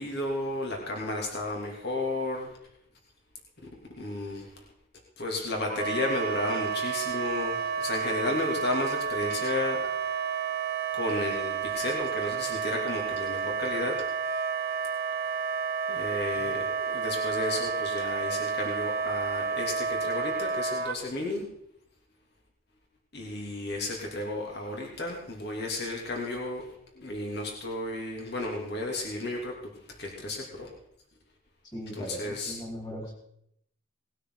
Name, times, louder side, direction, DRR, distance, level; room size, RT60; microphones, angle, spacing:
voice 1, 0.0-2.6 4.0-4.6 5.2-9.8 10.9-14.0 15.9-21.4 23.1-26.7 26.9-30.7 31.9-32.6, left 2 dB, 50° left, -1 dB, 2.8 m, -33 dB
Wind instrument woodwind instrument, 5.7-21.0, right 6 dB, 45° right, 1.5 m, -31 dB
voice 2, 31.7-33.1, equal, 20° left, -2 dB, 4.5 m, -39 dB
19.5 x 12.5 x 4.0 m, 0.74 s
head